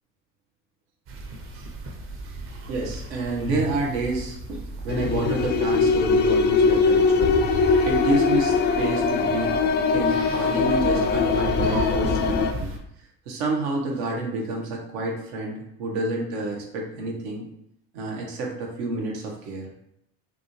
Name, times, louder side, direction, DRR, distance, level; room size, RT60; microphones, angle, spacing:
sound 1, 1.1-12.8, right 2 dB, 40° right, 0.8 m, -34 dB
voice 1, 2.2-7.3 7.8-9.6 9.9-12.7 13.2-17.5 17.9-19.7, right 2 dB, 90° right, 0 dB, 1.5 m, -29 dB
sound 2, 4.9-12.5, left 5 dB, 35° left, 0.4 m, -21 dB
6.0 x 2.7 x 3.2 m, 0.76 s
cardioid pair, 150°, 32 cm